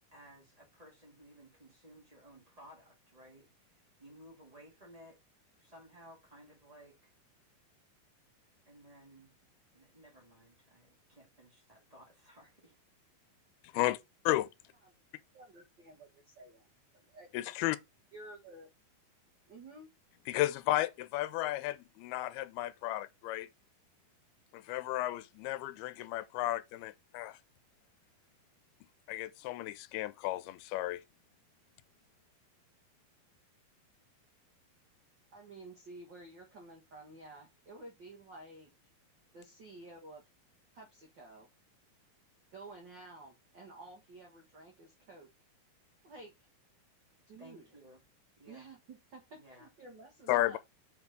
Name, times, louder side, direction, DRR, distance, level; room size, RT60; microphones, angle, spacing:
voice 1, 0.1-5.2 5.5-7.1 8.7-9.3 9.7-12.8 47.4-48.0 48.4-48.7 49.3-49.7, equal, 25° right, 0.8 m, -57 dB
voice 2, 15.3-17.3 18.1-18.7 19.5-19.9 35.3-38.7 39.3-40.3 40.7-41.5 42.5-45.3 46.0-46.5 47.3-47.7 48.4-50.6, right 2 dB, 60° right, 1.1 m, -52 dB
voice 3, 17.3-17.8 20.3-23.5 24.5-27.4 29.1-31.0 50.3-50.6, left 16 dB, 90° left, 2.6 m, -33 dB
7.7 x 4.3 x 4.0 m
omnidirectional pair, 4.3 m